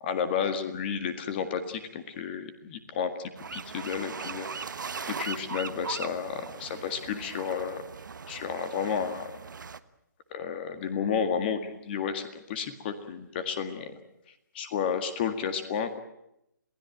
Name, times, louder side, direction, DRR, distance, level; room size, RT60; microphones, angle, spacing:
voice 1, 0.0-4.5 5.1-7.8 8.3-9.4 10.3-14.0 14.5-16.0, left 7 dB, 30° left, 9 dB, 1.9 m, -32 dB
sound 1, 3.4-9.8, right 5 dB, 75° right, 1.3 m, -39 dB
27.5 x 17.0 x 9.2 m, 0.82 s
hypercardioid pair, 160°, 10 cm